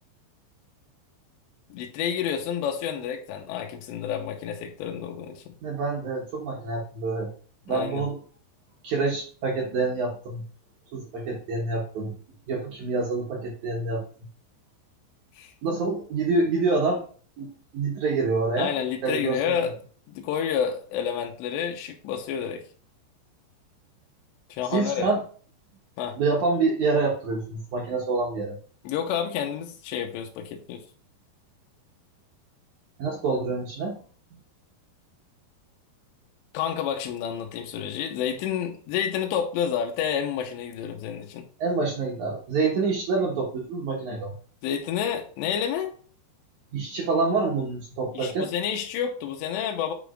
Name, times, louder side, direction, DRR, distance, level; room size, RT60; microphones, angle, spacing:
voice 1, 1.7-5.5 7.7-8.0 15.4-15.5 18.6-19.8 20.1-22.6 24.5-25.1 26.0-26.2 28.8-30.8 36.5-41.4 44.6-45.9 48.1-49.9, left 8 dB, 85° left, 3 dB, 2.9 m, -29 dB
voice 2, 5.6-7.3 7.7-8.2 8.8-10.4 10.9-12.2 12.5-14.0 15.6-17.0 17.4-18.7 19.0-19.7 24.7-25.2 26.2-28.6 33.0-34.0 41.6-44.3 46.7-48.5, right 3 dB, 80° right, -2 dB, 1.7 m, -27 dB
7.9 x 5.0 x 2.4 m, 0.43 s
omnidirectional pair, 5.1 m